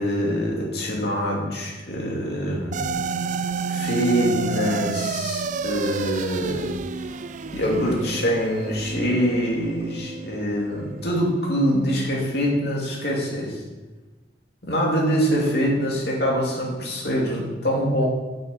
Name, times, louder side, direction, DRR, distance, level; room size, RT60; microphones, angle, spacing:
voice 1, 0.0-3.0 3.7-7.2 7.5-13.5 14.6-18.0, equal, 60° left, -3 dB, 2.9 m, -24 dB
sound 1, 2.7-11.2, right 5 dB, 45° right, 0.4 m, -30 dB
8.6 x 6.7 x 8.1 m, 1.2 s
head